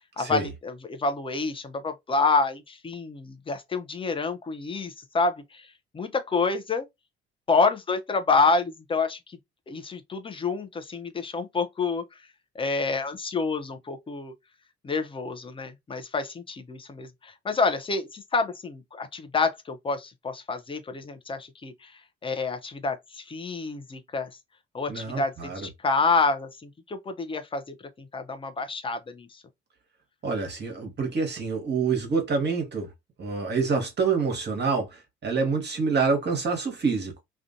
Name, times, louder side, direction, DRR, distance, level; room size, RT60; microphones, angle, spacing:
voice 1, 0.0-5.7 5.9-6.9 7.5-9.4 9.7-12.2 12.5-14.3 14.8-24.4 24.7-29.4, left 4 dB, 15° left, 0.5 m, -28 dB
voice 2, 24.9-25.7 30.2-32.9 33.2-37.2, right 5 dB, 35° right, 0.9 m, -27 dB
2.4 x 2.2 x 2.5 m
figure-of-eight pair, 45°, 32 cm